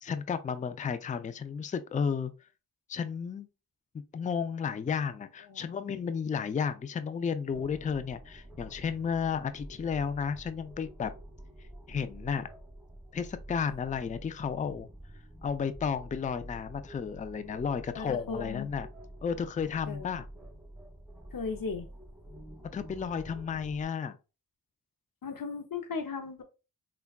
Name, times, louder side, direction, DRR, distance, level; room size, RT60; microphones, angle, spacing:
voice 1, 0.0-2.3 2.9-3.5 4.1-11.1 11.9-12.5 13.1-14.9 15.4-18.9 19.2-20.2 22.7-24.2, left 6 dB, 20° left, 0.3 m, -33 dB
sound 1, 7.5-23.9, right 1 dB, 5° right, 0.8 m, -48 dB
voice 2, 17.9-18.7 19.9-20.2 21.3-21.9 25.2-26.4, left 5 dB, 60° left, 0.6 m, -37 dB
3.4 x 2.3 x 2.2 m
cardioid pair, 45°, 39 cm